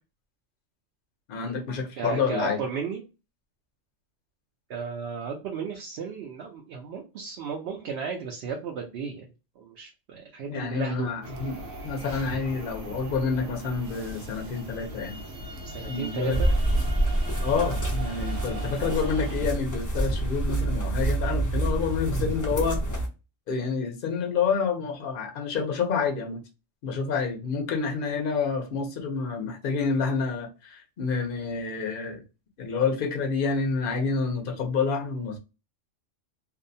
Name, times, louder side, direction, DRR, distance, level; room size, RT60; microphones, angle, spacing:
voice 1, 1.3-2.6 10.5-15.2 15.9-16.4 17.4-22.8 23.5-26.4 26.8-32.2 32.6-35.4, left 5 dB, 50° left, 0.7 m, -28 dB
voice 2, 2.0-3.0 4.7-9.2 9.6-11.1 12.3-12.4 15.6-16.5 18.2-18.4, right 6 dB, 65° right, 0.7 m, -34 dB
sound 1, 11.2-19.4, right 1 dB, 80° right, 1.0 m, -39 dB
sound 2, 16.3-23.1, right 1 dB, 30° left, 0.3 m, -27 dB
2.6 x 2.0 x 2.6 m
omnidirectional pair, 1.3 m